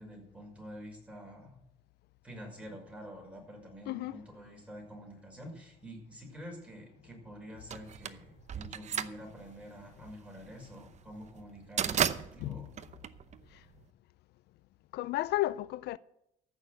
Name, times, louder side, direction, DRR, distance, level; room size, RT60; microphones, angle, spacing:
voice 1, 0.0-1.5 2.2-12.7, equal, 5° right, 5.9 m, -48 dB
voice 2, 3.9-4.2 12.4-12.7 13.5-13.7 14.9-16.0, left 16 dB, 75° left, 0.4 m, -33 dB
sound 1, 7.7-13.8, right 8 dB, 45° right, 0.8 m, -35 dB
14.5 x 6.5 x 8.0 m
cardioid pair, 110°, 17 cm